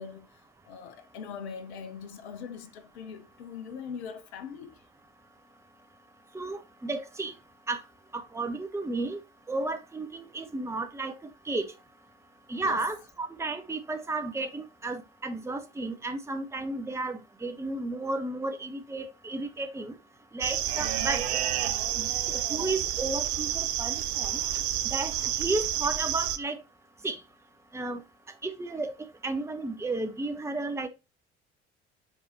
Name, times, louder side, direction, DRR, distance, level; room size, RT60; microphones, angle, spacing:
voice 1, 0.0-4.8 12.6-12.9 20.8-21.0 21.5-22.1, left 6 dB, 70° left, 1.0 m, -42 dB
voice 2, 6.3-7.3 7.7-7.8 8.1-9.2 9.5-11.7 12.5-19.9 20.3-21.4 22.0-24.4 24.9-26.6 27.0-27.2 27.7-28.0 28.4-28.9 29.2-30.9, right 2 dB, 10° right, 1.0 m, -33 dB
sound 1, 20.4-26.4, right 11 dB, 65° right, 0.7 m, -29 dB
5.4 x 4.8 x 4.2 m
figure-of-eight pair, 60°, 35 cm